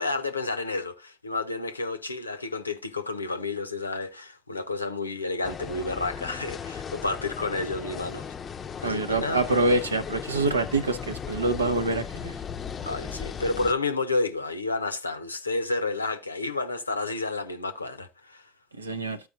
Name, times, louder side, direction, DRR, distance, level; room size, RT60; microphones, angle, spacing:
voice 1, 0.0-8.3 8.8-9.4 12.8-18.5, left 3 dB, 85° left, 0.6 m, -30 dB
sound 1, 5.4-13.7, left 7 dB, 30° left, 0.5 m, -37 dB
voice 2, 8.8-12.4 18.8-19.2, right 2 dB, 80° right, 0.6 m, -26 dB
13.5 x 4.7 x 2.5 m
figure-of-eight pair, 65°, 0 cm